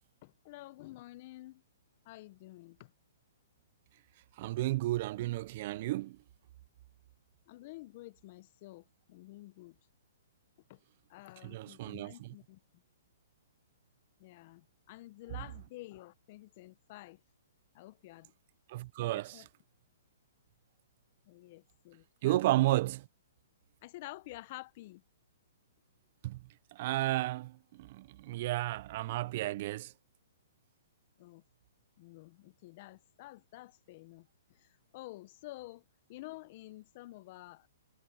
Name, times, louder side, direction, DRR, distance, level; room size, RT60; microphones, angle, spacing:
voice 1, 0.2-1.6 2.0-2.9 7.5-9.8 10.7-10.8 11.1-12.6 14.2-17.2 17.7-18.3 19.0-19.5 21.3-22.7 23.8-25.0 31.2-31.4 32.0-35.8 36.1-37.7, left 19 dB, 45° left, 1.0 m, -50 dB
voice 2, 4.4-6.2 11.4-12.3 18.7-19.4 22.2-23.1 26.2-26.4 26.7-29.9, right 17 dB, 45° right, 0.6 m, -32 dB
hypercardioid pair, 140°, 0 cm